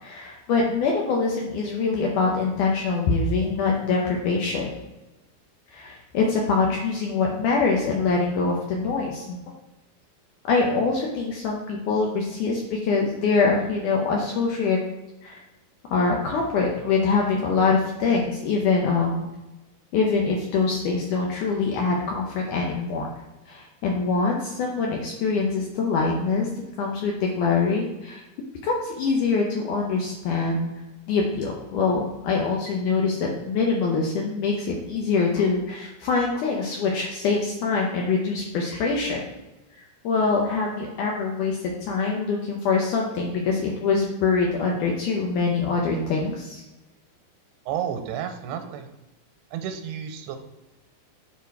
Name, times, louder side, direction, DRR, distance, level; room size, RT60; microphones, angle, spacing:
voice 1, 0.0-4.7 5.7-9.4 10.4-14.8 15.2-15.4 15.9-19.3 19.9-23.1 23.5-26.5 26.8-28.2 28.6-30.7 31.1-39.2 39.8-41.6 41.9-46.6, left 4 dB, 90° left, -1 dB, 1.7 m, -24 dB
voice 2, 47.7-48.9 49.5-50.4, right 9 dB, 85° right, 6 dB, 2.7 m, -31 dB
7.1 x 4.1 x 4.6 m, 1.0 s
omnidirectional pair, 4.8 m